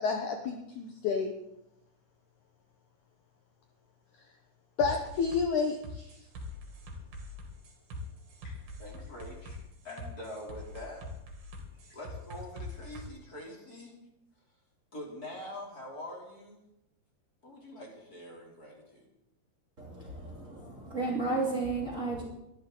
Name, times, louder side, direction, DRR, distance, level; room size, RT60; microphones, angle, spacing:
voice 1, 0.0-1.3 4.8-6.1 8.4-8.5, left 5 dB, 65° left, 4 dB, 2.2 m, -30 dB
sound 1, 4.8-13.1, left 1 dB, 70° right, 4.4 m, -43 dB
voice 2, 8.8-9.6 9.8-11.1 11.9-13.9 14.9-16.6 17.4-19.1, left 1 dB, 25° left, -2 dB, 3.4 m, -44 dB
voice 3, 19.8-22.2, right 3 dB, 20° right, -3 dB, 2.8 m, -33 dB
22.5 x 12.5 x 3.9 m, 0.85 s
omnidirectional pair, 4.5 m